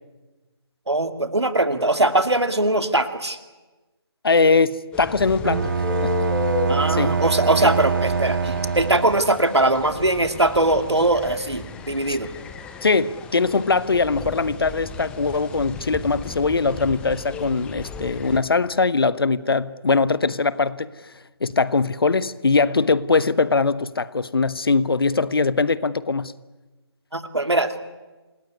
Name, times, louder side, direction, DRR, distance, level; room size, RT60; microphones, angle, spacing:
voice 1, 0.9-3.4 6.7-12.3 27.1-27.7, right 2 dB, 85° right, 9 dB, 2.7 m, -21 dB
voice 2, 4.2-5.7 6.0-6.2 6.9-7.2 7.6-7.7 12.8-20.9 21.4-26.3, left 4 dB, 60° left, 16 dB, 1.2 m, -21 dB
sound 1, 4.9-18.4, left 6 dB, 5° left, 1.2 m, -34 dB
Bowed string instrument, 5.4-9.4, right 5 dB, 55° right, 0.8 m, -24 dB
28.0 x 20.0 x 9.7 m, 1.2 s
figure-of-eight pair, 155°, 14 cm